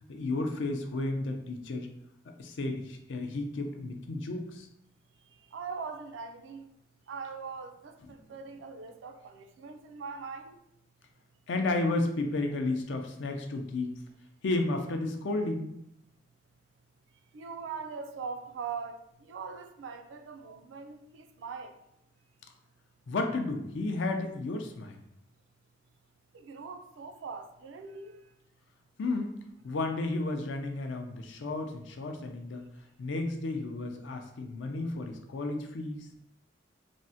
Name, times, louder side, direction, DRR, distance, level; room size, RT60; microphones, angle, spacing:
voice 1, 0.1-1.9 2.4-4.7 11.5-14.0 14.4-15.7 23.1-25.0 29.0-29.4 29.6-32.6 33.0-36.1, left 2 dB, 70° left, 0.4 m, -32 dB
voice 2, 5.5-6.7 7.1-10.6 17.3-19.0 19.3-21.7 26.3-28.2, right 5 dB, 75° right, 0.3 m, -41 dB
3.5 x 2.1 x 2.7 m
head